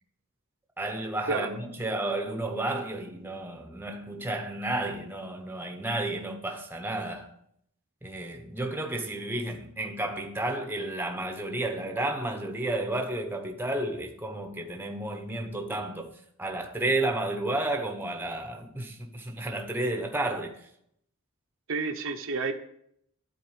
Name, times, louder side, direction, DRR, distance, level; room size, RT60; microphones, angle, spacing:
voice 1, 0.8-7.3 8.0-16.1 16.4-20.5, right 2 dB, 10° right, 0.9 m, -32 dB
voice 2, 1.3-1.6 21.7-22.5, right 4 dB, 60° right, 1.0 m, -30 dB
12.0 x 4.3 x 8.1 m
head